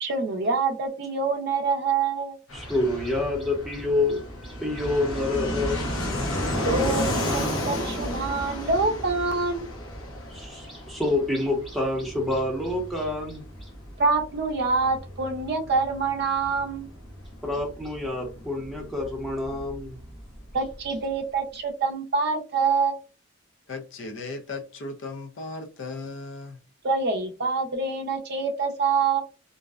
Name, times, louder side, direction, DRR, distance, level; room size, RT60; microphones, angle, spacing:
voice 1, 0.0-2.4 6.6-9.7 14.0-16.9 20.5-23.0 26.8-29.2, right 4 dB, 50° right, 0.5 m, -26 dB
Fixed-wing aircraft airplane, 2.5-20.9, left 1 dB, 85° left, 0.8 m, -33 dB
voice 2, 2.5-6.6 10.3-13.7 17.4-20.0, left 2 dB, ahead, 0.7 m, -28 dB
voice 3, 23.7-26.6, left 3 dB, 60° left, 0.4 m, -36 dB
2.6 x 2.1 x 2.3 m
head